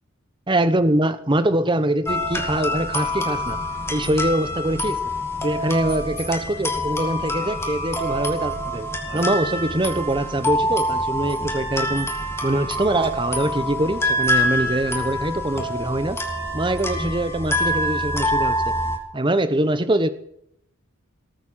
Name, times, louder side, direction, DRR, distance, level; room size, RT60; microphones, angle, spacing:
voice 1, 0.5-3.6 3.9-5.0 5.4-12.1 12.4-16.2 16.5-18.7 19.1-20.1, right 1 dB, 20° right, 11 dB, 0.9 m, -23 dB
sound 1, 2.1-19.0, left 1 dB, 10° left, 2.2 m, -26 dB
18.5 x 8.3 x 7.5 m, 0.70 s
head